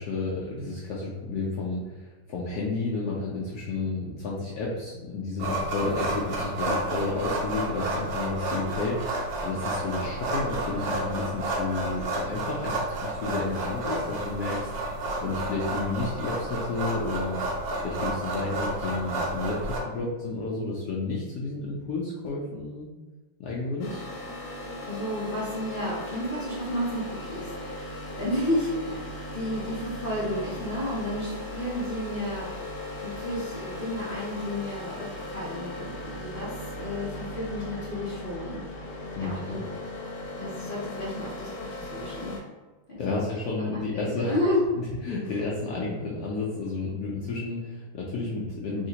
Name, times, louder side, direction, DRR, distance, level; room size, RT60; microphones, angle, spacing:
voice 1, 0.0-17.4 17.8-22.9 23.4-24.0 39.2-39.6 43.0-44.4 45.0-48.9, left 3 dB, 90° left, -4 dB, 0.8 m, -31 dB
sound 1, 5.4-19.8, right 2 dB, 70° right, 0.9 m, -31 dB
sound 2, 23.8-42.4, left 1 dB, 70° left, 1.3 m, -38 dB
voice 2, 24.8-32.6 33.0-38.6 39.2-39.6 40.4-42.4 42.9-43.0 43.6-44.6, left 1 dB, 55° left, -8 dB, 0.6 m, -32 dB
3.3 x 2.8 x 2.8 m, 1.2 s
omnidirectional pair, 2.2 m